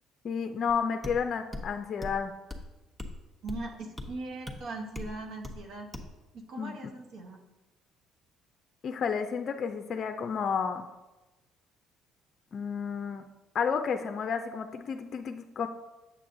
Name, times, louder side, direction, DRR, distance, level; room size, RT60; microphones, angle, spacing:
voice 1, 0.2-2.3 6.6-6.9 8.8-10.9 12.5-13.2 13.5-15.7, left 6 dB, 45° left, 7 dB, 0.4 m, -31 dB
sound 1, 0.7-0.8 1.0-1.2 1.5-1.7 2.0-2.2 2.5-2.7 3.0-3.2 3.5-3.7 4.0-4.1 4.5-4.6 5.0-5.1 5.4-5.6 5.9-6.1, left 2 dB, 5° right, 0.9 m, -38 dB
voice 2, 3.4-5.9 6.3-7.4, right 2 dB, 70° right, 1 dB, 1.0 m, -40 dB
8.3 x 7.2 x 2.6 m, 1.1 s
cardioid pair, 105°, 0 cm